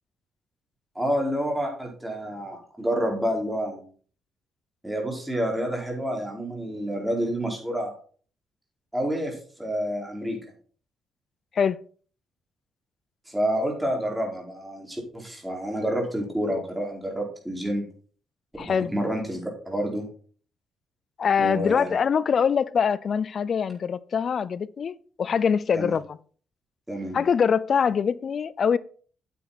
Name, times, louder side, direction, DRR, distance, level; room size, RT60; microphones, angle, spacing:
voice 1, 0.9-3.8 4.8-7.9 8.9-10.4 13.3-17.8 18.7-20.1 21.4-21.9 25.7-25.9 26.9-27.2, equal, 5° right, 4.8 m, -28 dB
voice 2, 18.6-18.9 21.2-26.2 27.1-28.8, left 6 dB, 50° left, 0.5 m, -23 dB
9.3 x 8.4 x 4.2 m
cardioid pair, 90°, 0 cm